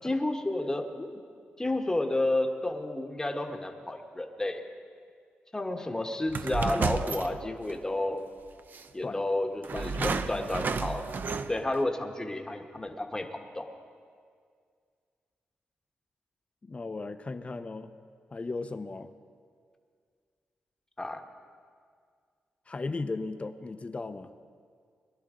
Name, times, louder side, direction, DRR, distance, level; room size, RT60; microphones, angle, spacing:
voice 1, 0.0-1.2 1.6-4.6 5.5-8.2 8.9-11.0 11.5-13.6 21.0-21.2, left 1 dB, 15° left, 4 dB, 1.3 m, -31 dB
sound 1, 6.3-7.8 8.7-8.8 9.6-11.8, right 5 dB, 50° right, 0.5 m, -32 dB
voice 2, 9.7-10.5 16.6-17.9 18.3-19.1 22.7-24.3, left 3 dB, 30° left, 10 dB, 0.7 m, -36 dB
22.0 x 11.0 x 3.8 m, 2.1 s
cardioid pair, 75°, 4 cm